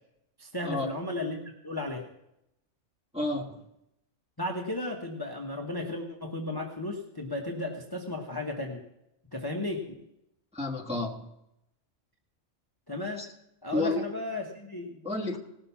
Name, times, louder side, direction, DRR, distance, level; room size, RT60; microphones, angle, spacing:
voice 1, 0.4-2.0 4.4-8.8 9.3-9.8 12.9-13.3 13.6-15.0, left 2 dB, 20° left, 1 dB, 1.1 m, -34 dB
voice 2, 3.1-3.6 10.5-11.2 13.2-13.3 13.7-14.0 15.0-15.4, left 2 dB, 5° right, -3 dB, 1.3 m, -30 dB
18.0 x 6.5 x 5.6 m, 0.82 s
omnidirectional pair, 1.3 m